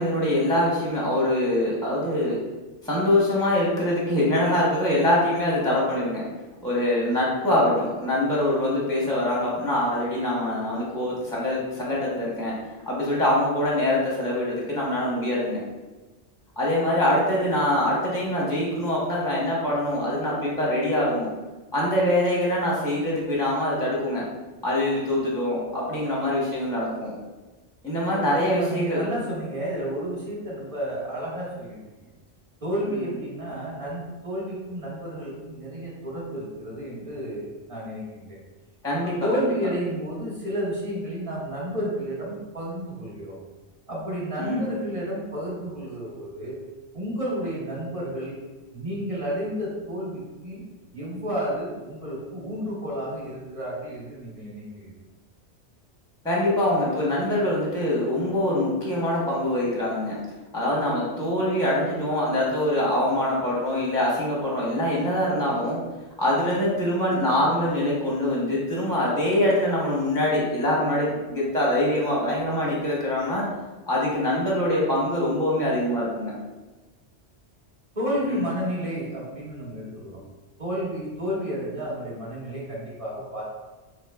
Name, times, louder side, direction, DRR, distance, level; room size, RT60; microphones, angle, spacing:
voice 1, 0.0-2.4 2.8-6.2 6.6-12.5 12.9-15.6 16.6-21.3 21.7-24.3 24.6-27.1 27.8-29.0 38.8-39.2 44.4-44.8 56.2-60.2 60.5-65.8 66.2-73.5 73.9-76.3 78.2-78.5, left 1 dB, 5° left, -5 dB, 0.6 m, -24 dB
voice 2, 28.4-32.1 32.6-38.4 38.9-43.4 43.9-46.6 46.9-48.4 48.7-50.7 50.9-54.9 77.9-80.2 80.6-83.4, equal, 30° right, -6 dB, 1.0 m, -31 dB
4.3 x 2.9 x 2.3 m, 1.2 s
omnidirectional pair, 1.2 m